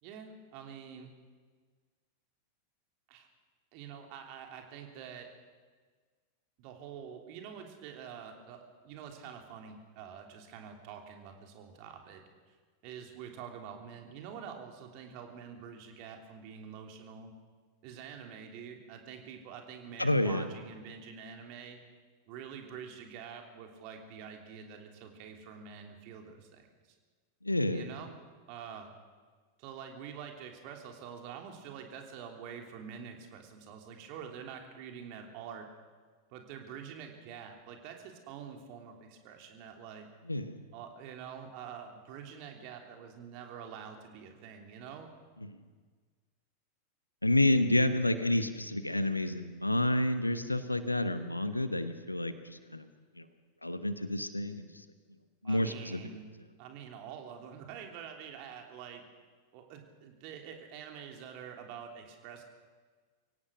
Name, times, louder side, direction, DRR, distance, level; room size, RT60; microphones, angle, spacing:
voice 1, 0.0-1.1 3.1-3.3 3.7-5.3 6.6-12.2 12.8-17.3 17.8-21.8 22.3-26.7 27.7-28.2 28.5-28.9 29.6-35.7 36.3-40.1 40.7-45.1 55.4-56.2 56.6-59.0 59.5-62.4, right 7 dB, 45° right, 3 dB, 3.1 m, -46 dB
voice 2, 20.0-20.4 27.4-27.9 40.3-40.6 45.4-45.6 47.2-52.9 53.2-53.3 53.6-54.7 55.4-56.0, left 1 dB, 85° left, 11 dB, 1.2 m, -29 dB
24.0 x 17.0 x 6.3 m, 1.5 s
figure-of-eight pair, 90°, 0 cm